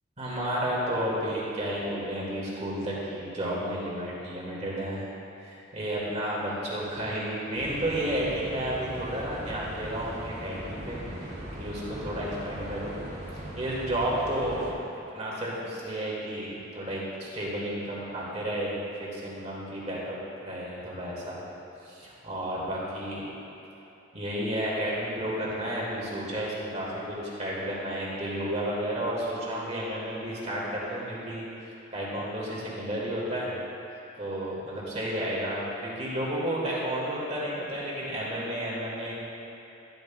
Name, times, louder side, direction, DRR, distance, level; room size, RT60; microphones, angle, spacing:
voice 1, 0.2-5.1 5.4-11.3 11.6-13.0 13.6-20.2 20.4-21.4 21.8-23.2 24.1-33.6 34.2-39.1, right 1 dB, 35° right, -6 dB, 2.2 m, -32 dB
sound 1, 7.5-14.7, right 1 dB, 55° right, 2.4 m, -39 dB
13.0 x 12.5 x 2.4 m, 2.9 s
head